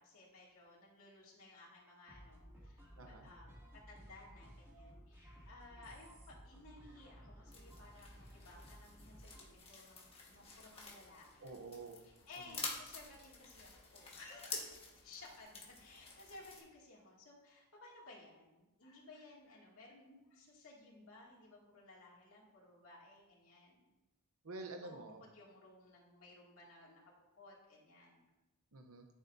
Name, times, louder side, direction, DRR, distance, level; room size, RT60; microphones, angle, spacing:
voice 1, 0.0-3.5 3.9-11.6 12.3-23.9 24.8-25.0 25.3-27.0 27.4-28.3, left 2 dB, 70° left, -4 dB, 2.5 m, -58 dB
sound 1, 2.1-9.5, equal, 10° right, 2.4 m, -57 dB
voice 2, 3.0-3.3 11.4-12.0 12.5-12.6 24.4-25.2 28.7-29.1, right 3 dB, 75° right, 4 dB, 0.8 m, -49 dB
sound 2, 7.5-16.6, left 3 dB, 25° left, 1.6 m, -50 dB
13.0 x 7.3 x 2.7 m, 1.0 s
head